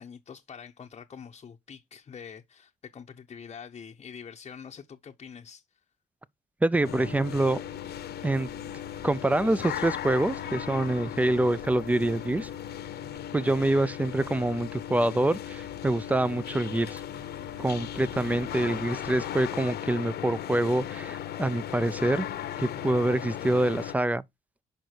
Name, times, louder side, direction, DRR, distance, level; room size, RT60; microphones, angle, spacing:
voice 1, 0.0-5.6, left 7 dB, 35° left, 0.7 m, -45 dB
voice 2, 6.6-7.6 8.2-8.5 9.0-12.5 13.3-17.0 17.6-22.3 22.6-24.2, right 1 dB, 10° right, 0.4 m, -26 dB
sound 1, 6.8-23.9, left 11 dB, 65° left, 0.9 m, -37 dB
sound 2, 6.8-19.5, right 4 dB, 50° right, 2.7 m, -54 dB
6.5 x 5.2 x 4.4 m
cardioid pair, 105°, 18 cm